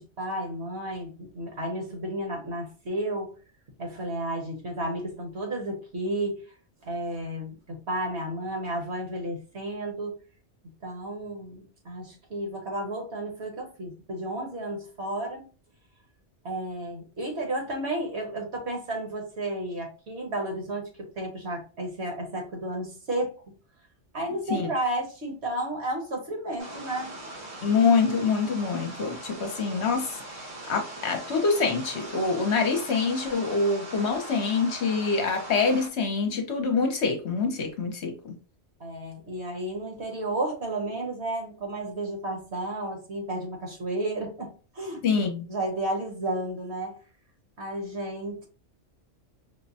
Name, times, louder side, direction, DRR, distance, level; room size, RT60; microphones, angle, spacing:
voice 1, 0.0-3.3 3.8-6.4 6.8-10.2 10.8-15.5 16.4-23.3 24.1-27.1 38.8-45.2 45.5-47.0 47.6-48.5, right 1 dB, 60° right, 1.4 m, -32 dB
sound 1, 26.6-35.9, right 1 dB, 85° right, 1.3 m, -41 dB
voice 2, 27.6-38.4 45.0-45.5, left 4 dB, 65° left, 0.9 m, -25 dB
5.0 x 2.1 x 2.7 m
omnidirectional pair, 1.3 m